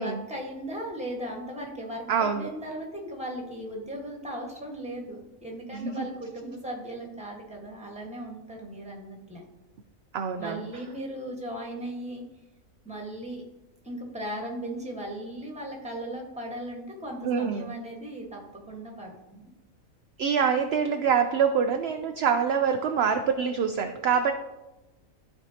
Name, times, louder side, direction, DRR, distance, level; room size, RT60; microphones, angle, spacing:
voice 1, 0.0-9.4 10.4-12.2 12.8-13.4 13.8-19.5, right 1 dB, 5° right, 0 dB, 1.3 m, -37 dB
voice 2, 2.1-2.5 5.7-6.1 10.1-10.6 17.2-17.7 20.2-24.3, right 6 dB, 65° right, 6 dB, 0.6 m, -25 dB
13.0 x 4.6 x 2.8 m, 1.0 s
omnidirectional pair, 1.5 m